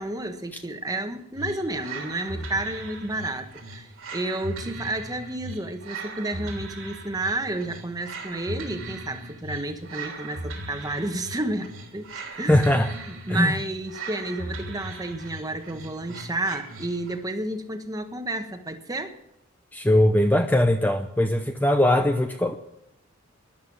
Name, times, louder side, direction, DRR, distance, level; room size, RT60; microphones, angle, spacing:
voice 1, 0.0-12.1 12.4-12.6 13.1-19.2, right 2 dB, 20° right, 7 dB, 1.3 m, -31 dB
sound 1, 1.3-17.3, right 2 dB, 85° right, 3.3 m, -38 dB
voice 2, 12.5-12.9 13.3-13.5 19.7-22.5, left 1 dB, 10° left, 6 dB, 0.7 m, -20 dB
13.0 x 11.0 x 7.3 m, 0.81 s
head